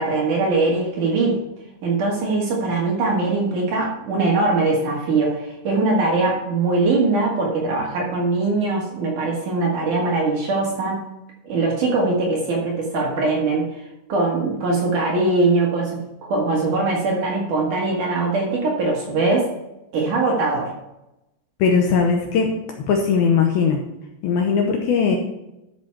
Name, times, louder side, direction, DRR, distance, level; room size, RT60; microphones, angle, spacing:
voice 1, 0.0-1.4 1.8-11.0 11.4-13.7 14.1-19.5 19.9-20.7, right 3 dB, 55° right, -2 dB, 2.5 m, -21 dB
voice 2, 21.6-22.5 22.9-23.8 24.2-25.2, left 5 dB, 75° left, 2 dB, 2.4 m, -19 dB
13.0 x 6.1 x 4.6 m, 0.91 s
omnidirectional pair, 5.2 m